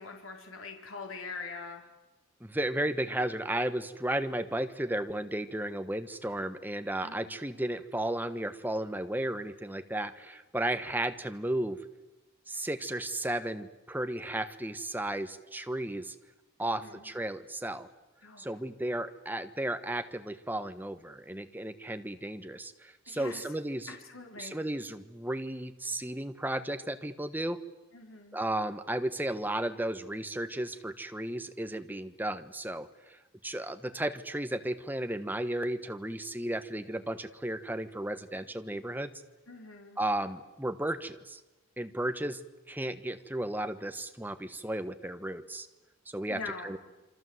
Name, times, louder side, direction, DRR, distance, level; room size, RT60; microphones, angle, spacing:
voice 1, 0.0-1.8 7.0-7.4 16.6-17.1 18.2-18.5 23.1-23.4 23.9-24.6 27.9-28.4 39.5-40.0 46.3-46.8, left 4 dB, 65° left, 3 dB, 4.2 m, -43 dB
voice 2, 2.4-11.8 12.5-16.1 16.6-17.9 18.4-23.9 24.4-27.6 28.3-39.1 40.0-41.4 41.8-42.4 42.7-45.7 46.1-46.8, right 1 dB, 10° right, 9 dB, 1.2 m, -34 dB
27.5 x 25.0 x 8.0 m, 1.1 s
head